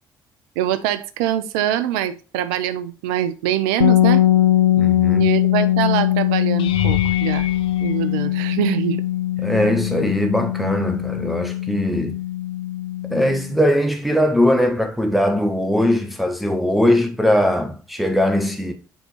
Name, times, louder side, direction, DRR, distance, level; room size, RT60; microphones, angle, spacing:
voice 1, 0.6-4.2 5.1-7.5 7.8-9.0, right 11 dB, 70° right, 0.5 m, -23 dB
sound 1, 3.8-13.5, left 13 dB, 85° left, 0.4 m, -20 dB
voice 2, 4.8-5.3 9.4-12.1 13.1-18.7, left 1 dB, ahead, 1.1 m, -20 dB
sound 2, 6.6-8.9 9.6-10.0 10.4-10.5 14.9-15.0, left 10 dB, 55° left, 0.8 m, -29 dB
7.9 x 3.7 x 4.2 m
figure-of-eight pair, 45°, 10 cm